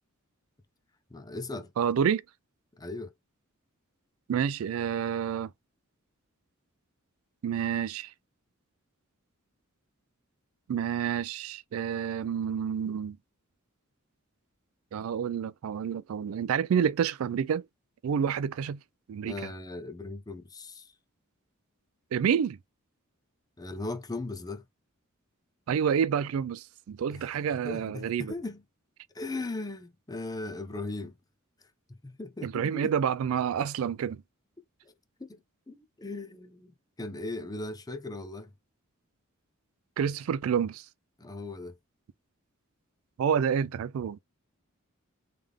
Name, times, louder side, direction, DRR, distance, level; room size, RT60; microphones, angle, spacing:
voice 1, 1.1-1.7 2.8-3.1 19.2-20.9 23.6-24.7 27.1-27.3 27.6-28.6 29.1-31.2 31.9-32.9 34.9-35.0 35.2-35.4 35.7-38.5 41.2-41.8, left 2 dB, 20° left, 0.6 m, -38 dB
voice 2, 1.8-2.2 4.3-5.5 7.4-8.1 10.7-13.2 14.9-17.6 18.0-18.8 19.1-19.3 22.1-22.6 25.7-28.3 32.4-34.2 40.0-40.8 43.2-44.2, right 8 dB, 75° right, 0.3 m, -28 dB
3.6 x 3.3 x 3.4 m
head